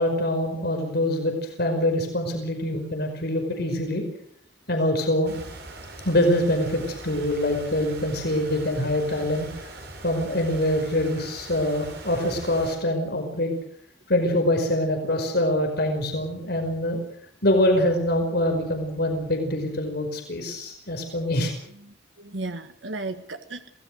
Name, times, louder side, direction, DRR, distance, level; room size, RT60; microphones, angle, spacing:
voice 1, 0.0-4.0 4.7-5.4 6.0-9.5 10.0-13.5 14.1-17.0 17.4-21.5, left 1 dB, 60° left, 4 dB, 5.3 m, -24 dB
sound 1, 5.2-12.8, right 2 dB, 60° right, 7.8 m, -41 dB
voice 2, 21.8-23.7, right 2 dB, 80° right, 8 dB, 1.6 m, -35 dB
27.5 x 18.5 x 6.5 m, 0.68 s
head